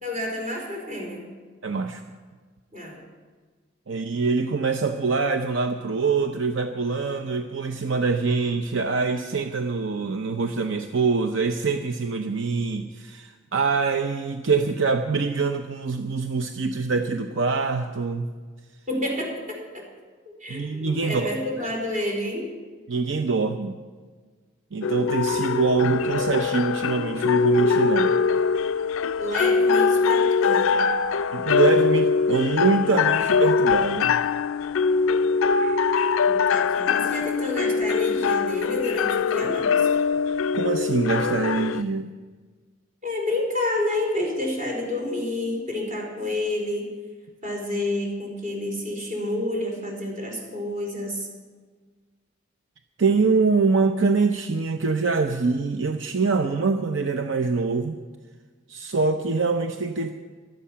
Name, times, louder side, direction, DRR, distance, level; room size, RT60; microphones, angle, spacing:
voice 1, 0.0-1.3 2.7-3.0 18.9-19.8 20.2-22.5 29.2-30.9 35.6-35.8 36.2-39.9 43.0-46.9 47.4-51.3, left 1 dB, 40° right, 0 dB, 4.5 m, -29 dB
voice 2, 1.6-2.0 3.9-18.3 20.5-21.3 22.9-23.8 24.7-28.2 31.3-34.2 40.5-42.1 53.0-58.0 58.7-60.1, right 4 dB, 70° right, 6 dB, 0.7 m, -24 dB
sound 1, 24.8-41.8, left 5 dB, 90° left, 0.4 m, -22 dB
16.0 x 12.5 x 5.7 m, 1.5 s
head